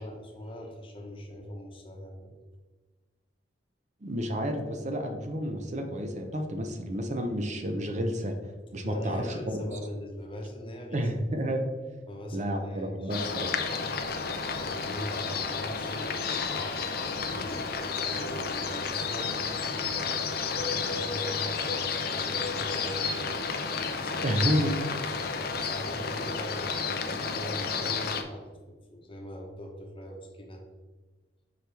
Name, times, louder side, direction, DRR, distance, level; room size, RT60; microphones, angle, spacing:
voice 1, 0.0-2.3 8.8-11.1 12.1-13.2 14.6-16.9 17.9-23.4 23.9-24.4 25.6-30.6, equal, 30° left, 1 dB, 1.0 m, -42 dB
voice 2, 4.0-8.3 8.7-9.6 10.9-11.6 12.3-13.5 24.2-24.9, equal, 40° right, 5 dB, 0.7 m, -30 dB
sound 1, 13.1-28.2, left 5 dB, 60° left, 0.6 m, -31 dB
5.9 x 4.9 x 3.4 m, 1.3 s
head